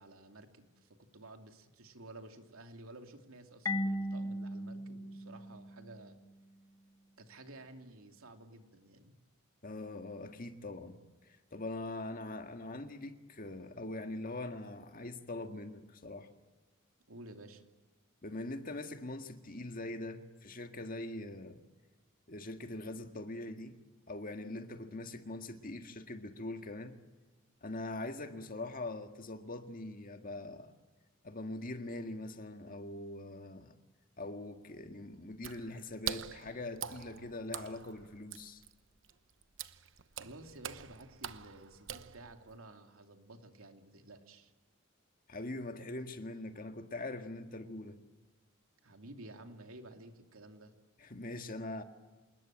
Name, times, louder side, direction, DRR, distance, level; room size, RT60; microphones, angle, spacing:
voice 1, 0.0-6.2 7.2-9.1 17.1-17.6 40.1-44.5 48.8-50.7, right 2 dB, 90° right, 5 dB, 2.7 m, -53 dB
Marimba xylophone, 3.7-6.3, left 1 dB, 15° left, 1.2 m, -37 dB
voice 2, 9.6-11.0 11.2-16.3 18.2-21.6 22.3-23.8 24.1-27.0 27.6-30.7 31.2-33.7 34.2-38.6 45.3-48.0 51.0-51.8, left 2 dB, 45° left, 7 dB, 1.9 m, -42 dB
Water / Splash splatter, 35.3-42.6, right 9 dB, 65° right, 1.0 m, -45 dB
27.5 x 20.5 x 8.9 m, 1.2 s
head